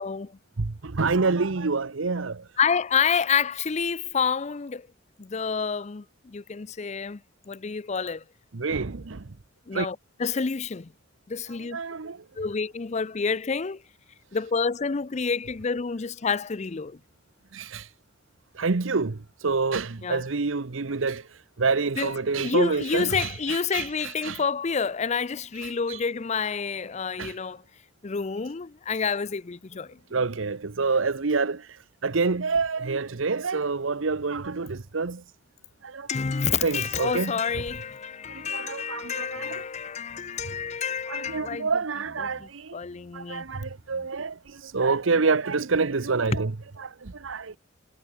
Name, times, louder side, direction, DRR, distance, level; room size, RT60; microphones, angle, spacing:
voice 1, 0.0-0.4 2.6-4.9 5.2-7.2 7.5-8.2 9.7-10.9 11.3-11.8 12.4-13.8 14.3-17.0 20.0-20.3 22.0-27.6 28.0-30.2 36.1-41.8 42.2-43.4, left 5 dB, 35° left, 0.5 m, -29 dB
voice 2, 0.6-2.4 8.5-9.2 9.7-9.9 11.7-12.2 17.5-17.9 18.5-21.3 21.6-24.4 25.6-26.0 27.2-27.3 30.1-35.2 35.8-36.1 36.6-37.3 38.3-39.6 41.1-42.7 43.1-46.5 46.8-47.5, right 4 dB, 75° right, 0.9 m, -27 dB
sound 1, 36.7-37.2 37.5-37.9 38.2-38.5 39.0-39.1 39.4-41.8 42.0-42.5 42.8-43.2 43.5-44.1, equal, 5° right, 7.3 m, -54 dB
head